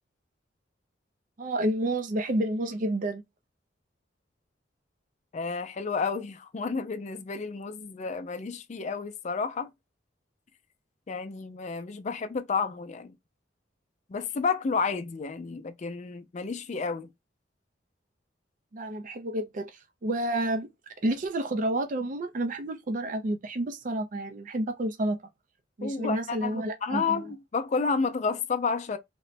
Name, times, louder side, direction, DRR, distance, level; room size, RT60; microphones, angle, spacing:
voice 1, 1.4-3.2 18.7-20.7 21.0-25.2 25.8-27.2, right 1 dB, 45° right, 0.5 m, -30 dB
voice 2, 5.3-9.7 11.1-13.1 14.1-17.1 25.8-29.0, left 5 dB, 40° left, 0.4 m, -31 dB
3.0 x 2.1 x 4.0 m
head